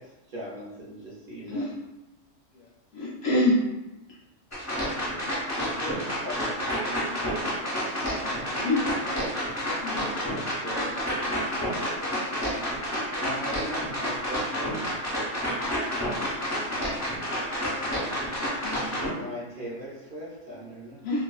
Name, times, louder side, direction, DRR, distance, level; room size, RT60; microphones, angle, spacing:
voice 1, 0.0-1.7 5.5-7.9 8.2-9.3 10.3-11.2 13.2-14.9 19.1-21.1, equal, 55° right, -6 dB, 0.6 m, -40 dB
voice 2, 2.9-3.6 8.6-8.8 9.8-10.2 18.6-19.0 21.0-21.2, left 1 dB, 65° left, -4 dB, 0.8 m, -26 dB
sound 1, 4.5-19.1, equal, 20° left, 0.5 m, -29 dB
voice 3, 10.8-12.7, left 3 dB, 85° left, -1 dB, 1.0 m, -50 dB
2.5 x 2.2 x 2.3 m, 1.0 s
omnidirectional pair, 1.3 m